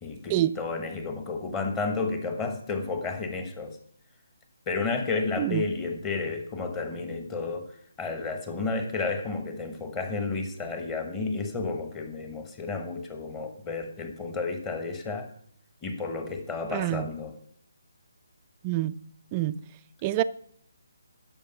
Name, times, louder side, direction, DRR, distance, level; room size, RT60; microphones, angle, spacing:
voice 1, 0.0-3.8 4.7-7.7 8.0-15.3 15.8-17.3, left 3 dB, 15° left, 1.1 m, -31 dB
voice 2, 16.7-17.1 18.6-19.0 19.3-19.6 20.0-20.2, right 14 dB, 20° right, 0.3 m, -26 dB
12.5 x 5.2 x 5.8 m
figure-of-eight pair, 145°, 0 cm